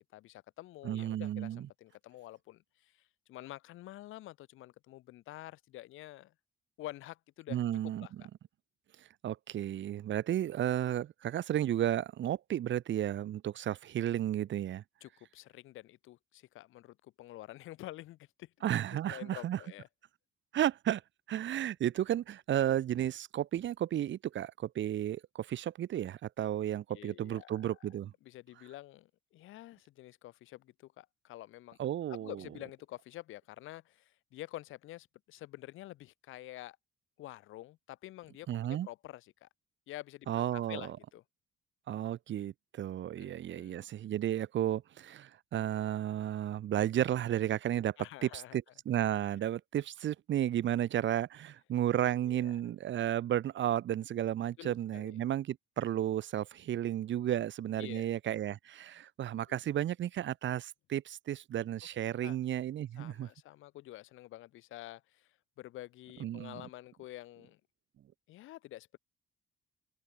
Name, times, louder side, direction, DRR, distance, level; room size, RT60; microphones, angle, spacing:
voice 1, 0.0-6.3 6.8-7.6 8.0-8.3 15.0-18.7 19.1-19.9 26.9-27.8 28.2-31.8 32.1-36.8 37.2-39.5 39.9-41.2 43.2-43.8 48.0-48.6 52.3-52.6 54.6-55.2 57.8-58.1 59.5-59.6 62.2-62.4 63.0-67.6 68.3-69.0, left 16 dB, 90° left, 4.0 m, -48 dB
voice 2, 0.8-1.7 7.5-8.1 9.2-14.8 18.6-19.6 20.5-21.0 21.3-28.1 31.8-32.4 38.5-38.9 40.3-40.9 41.9-48.0 48.2-63.3 66.2-66.6, right 11 dB, 70° right, 2.0 m, -33 dB
cardioid pair, 90°, 20 cm